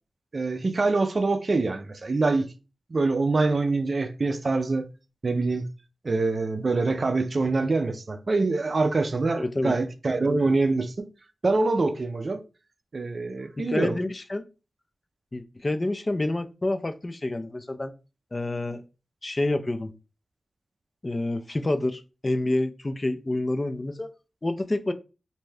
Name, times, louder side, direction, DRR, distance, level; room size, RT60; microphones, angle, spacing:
voice 1, 0.3-2.5 2.9-4.9 5.2-5.7 6.0-11.1 11.4-12.4 12.9-14.0, right 3 dB, 50° right, 0.4 m, -25 dB
voice 2, 9.3-9.7 13.6-14.5 15.3-17.9 18.3-18.8 19.2-19.9 21.0-24.1 24.4-24.9, left 2 dB, 30° left, 0.4 m, -28 dB
2.6 x 2.2 x 3.2 m
cardioid pair, 60°, 0 cm